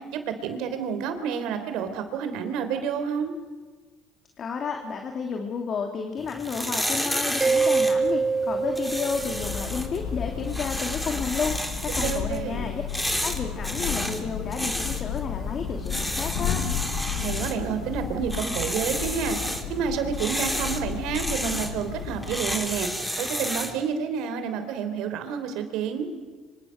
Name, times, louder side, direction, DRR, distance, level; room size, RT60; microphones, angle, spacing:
voice 1, 0.0-3.3 12.0-12.7 17.2-22.9 23.2-26.1, right 7 dB, 75° right, 8 dB, 3.5 m, -29 dB
voice 2, 4.4-12.8 13.2-16.6, left 5 dB, 45° left, 3 dB, 2.7 m, -31 dB
sound 1, 6.2-23.8, equal, 5° left, 3.2 m, -32 dB
Mallet percussion, 7.4-9.9, right 4 dB, 20° right, 0.7 m, -25 dB
Thunder / Rain, 8.8-23.1, left 8 dB, 75° left, 4.4 m, -33 dB
26.0 x 26.0 x 6.5 m, 1.4 s
supercardioid pair, 85°, 0 cm